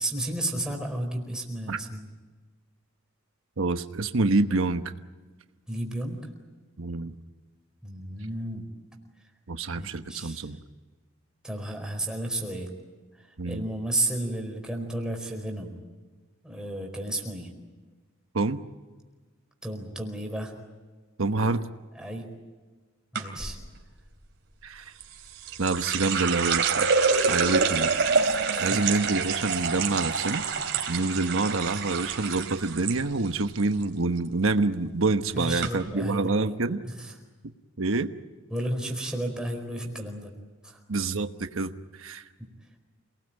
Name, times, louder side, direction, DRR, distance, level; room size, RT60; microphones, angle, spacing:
voice 1, 0.0-2.1 5.7-6.2 7.8-8.6 9.7-10.6 11.4-12.7 13.2-15.8 16.4-17.5 19.6-20.5 21.9-22.3 23.1-23.6 28.5-28.8 35.3-36.6 36.8-37.1 38.5-40.3 40.6-40.8 42.4-42.5, right 1 dB, 5° right, 1 dB, 4.7 m, -33 dB
voice 2, 3.6-4.8 6.8-7.1 9.5-10.6 13.4-13.7 18.3-18.6 21.2-21.6 24.6-24.9 25.6-26.9 27.3-28.0 28.6-30.4 30.9-36.8 37.8-38.1 40.9-41.7 42.0-42.2, right 3 dB, 90° right, 8 dB, 1.1 m, -27 dB
sound 1, 23.2-23.5 25.0-33.0 33.3-33.8 34.2-34.5 35.2-35.3 35.6-35.7, right 5 dB, 60° right, 3.7 m, -26 dB
28.0 x 19.5 x 9.1 m, 1.3 s
head